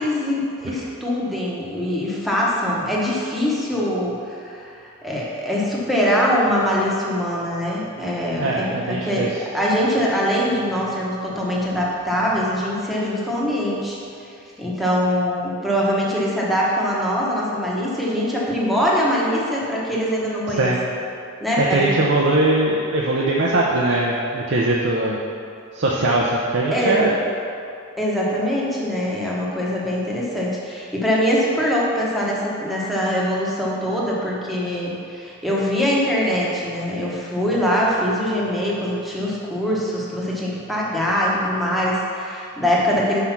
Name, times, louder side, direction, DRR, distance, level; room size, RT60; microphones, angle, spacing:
voice 1, 0.0-14.0 14.6-20.7 21.4-22.0 26.7-27.0 28.0-43.2, equal, ahead, -6 dB, 1.1 m, -23 dB
voice 2, 8.4-9.3 20.6-20.8 21.6-25.2 25.7-27.1, right 2 dB, 55° right, -3 dB, 0.6 m, -20 dB
5.7 x 4.8 x 5.8 m, 2.5 s
head